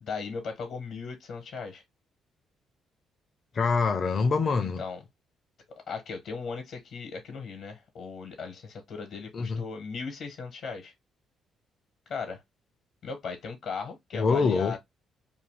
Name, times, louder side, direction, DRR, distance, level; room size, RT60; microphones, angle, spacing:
voice 1, 0.0-1.8 4.6-5.0 5.9-10.9 12.1-12.4 13.0-14.8, left 5 dB, 75° left, 1.0 m, -37 dB
voice 2, 3.5-4.8 9.3-9.6 14.1-14.8, left 4 dB, 45° left, 0.5 m, -25 dB
2.7 x 2.4 x 3.2 m
cardioid pair, 90°, 0 cm